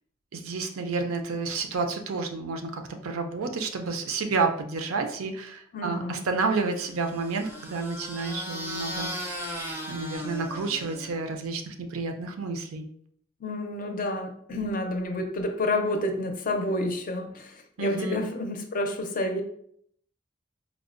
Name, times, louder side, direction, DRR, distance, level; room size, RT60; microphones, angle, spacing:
voice 1, 0.3-12.9 17.8-18.2, right 4 dB, 85° right, 5 dB, 0.5 m, -30 dB
voice 2, 5.7-6.3 13.4-19.4, left 1 dB, 40° left, 4 dB, 0.5 m, -29 dB
sound 1, 6.7-11.3, equal, 10° right, 0.5 m, -37 dB
4.6 x 2.0 x 2.5 m, 0.66 s
head